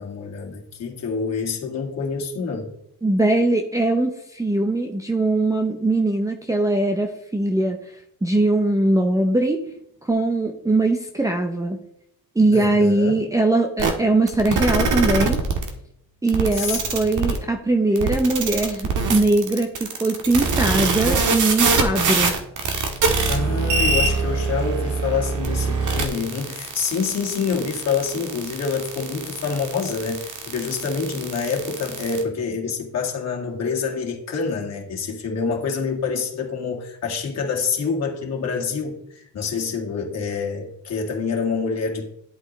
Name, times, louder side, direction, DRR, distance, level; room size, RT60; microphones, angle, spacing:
voice 1, 0.0-2.7 12.5-13.1 16.5-17.1 23.3-42.1, left 5 dB, 40° left, -1 dB, 2.2 m, -27 dB
voice 2, 3.0-7.8 8.2-9.6 10.0-11.8 12.4-15.4 16.2-22.3, right 2 dB, 10° right, 1 dB, 0.7 m, -21 dB
sound 1, 13.8-13.9 14.3-15.7 16.3-17.4 18.0-32.2, right 4 dB, 50° right, 1.7 m, -23 dB
10.5 x 8.2 x 3.2 m, 0.72 s
cardioid pair, 130°, 38 cm